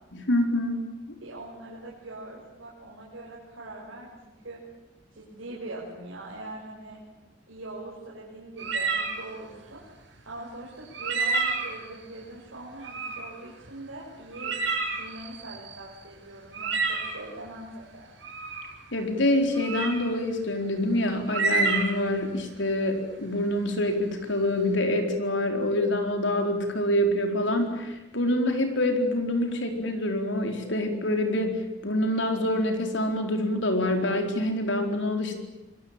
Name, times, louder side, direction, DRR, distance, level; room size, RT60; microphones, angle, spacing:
voice 1, 0.1-0.8 18.9-35.4, left 1 dB, 65° left, 5 dB, 4.5 m, -26 dB
voice 2, 1.2-4.6 5.1-7.0 7.5-9.8 10.2-17.7 17.9-18.1, right 2 dB, 90° right, -4 dB, 6.4 m, -42 dB
sound 1, 8.6-9.2 10.9-11.8 12.8-13.2 13.6-13.7 14.3-15.7 16.5-17.2 18.2-18.7 19.5-20.0 21.3-22.1, right 4 dB, 70° right, 7.9 m, -28 dB
25.5 x 22.5 x 9.0 m, 1.0 s
head